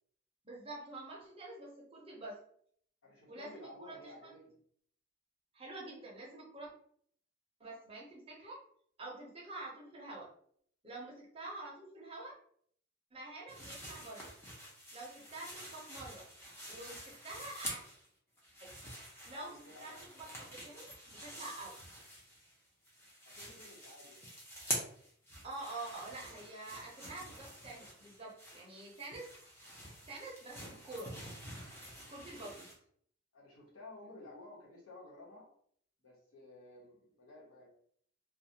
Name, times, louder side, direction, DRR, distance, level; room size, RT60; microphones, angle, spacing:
voice 1, 0.4-2.4 3.3-4.1 5.5-6.7 7.6-8.6 9.0-10.3 10.8-12.3 13.1-14.3 14.9-16.3 16.7-17.8 18.6-18.7 19.3-22.0 25.4-29.3 30.1-31.2 32.1-32.7, right 2 dB, 25° right, -3 dB, 0.6 m, -47 dB
voice 2, 3.0-4.6 19.3-20.1 23.2-24.3 32.0-32.4 33.3-35.5 36.0-37.7, left 2 dB, 85° left, -4 dB, 1.1 m, -54 dB
sound 1, 13.5-18.1 18.4-22.6 22.8-32.7, equal, 10° left, 0.6 m, -47 dB
2.4 x 2.2 x 2.8 m, 0.62 s
head